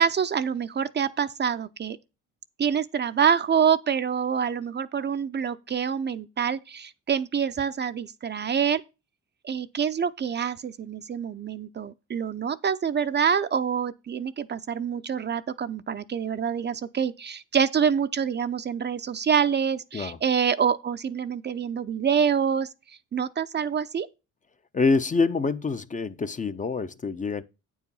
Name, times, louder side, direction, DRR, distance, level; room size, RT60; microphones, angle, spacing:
voice 1, 0.0-2.0 2.6-8.8 9.4-22.7 23.1-24.1, right 7 dB, 35° right, 0.5 m, -26 dB
voice 2, 24.7-27.4, left 4 dB, 25° left, 0.5 m, -26 dB
8.7 x 4.8 x 5.4 m
cardioid pair, 90°, 30 cm